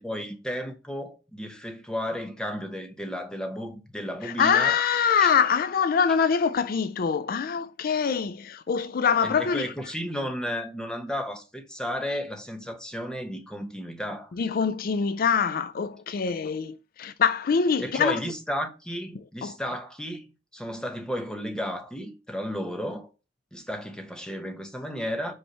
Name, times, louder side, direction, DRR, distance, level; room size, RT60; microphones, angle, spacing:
voice 1, 0.0-4.8 9.2-14.3 17.8-20.2 20.5-23.1 23.5-25.3, equal, 5° left, 1.0 m, -33 dB
voice 2, 4.2-9.7 14.4-18.2 19.4-19.6, left 6 dB, 50° left, 0.4 m, -24 dB
5.5 x 3.3 x 5.6 m
head